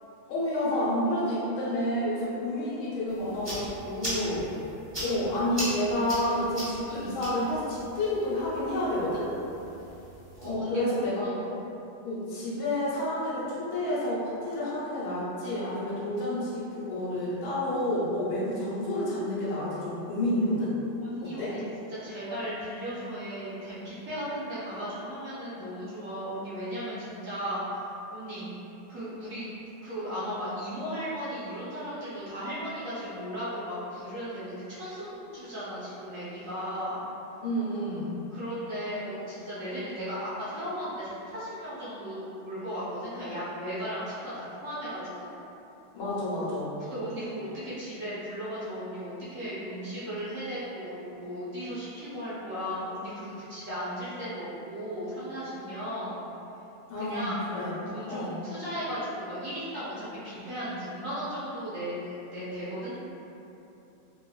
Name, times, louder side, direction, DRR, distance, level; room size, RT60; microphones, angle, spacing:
voice 1, 0.3-4.5 5.0-9.3 10.4-11.2 12.0-20.7 21.2-21.6 37.4-38.2 45.9-46.7 56.9-57.7 58.1-58.4, left 1 dB, 80° left, -9 dB, 1.7 m, -29 dB
sound 1, 3.1-10.5, right 1 dB, 15° right, 1.2 m, -39 dB
voice 2, 10.4-10.8 11.2-11.5 21.0-21.6 21.9-27.9 28.1-28.5 28.9-29.5 29.8-37.0 38.3-45.3 46.8-56.2 57.0-57.4 57.9-63.0, equal, 60° right, -11 dB, 0.8 m, -36 dB
3.4 x 2.9 x 2.3 m, 2.9 s
omnidirectional pair, 2.2 m